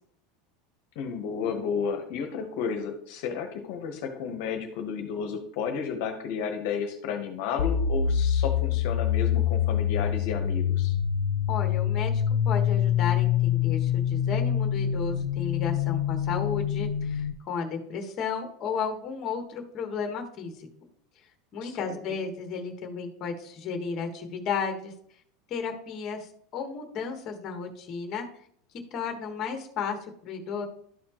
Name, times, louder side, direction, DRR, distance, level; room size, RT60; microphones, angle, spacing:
voice 1, 0.9-11.0 21.6-22.0, left 6 dB, 50° left, 5 dB, 1.0 m, -32 dB
sound 1, 7.6-17.3, left 9 dB, 80° left, 0.4 m, -25 dB
voice 2, 11.5-20.7 21.5-24.9 25.5-28.3 28.9-30.0 30.2-30.7, left 5 dB, 30° left, 4 dB, 1.2 m, -33 dB
12.0 x 4.3 x 3.0 m, 0.65 s
supercardioid pair, 175°, 0 cm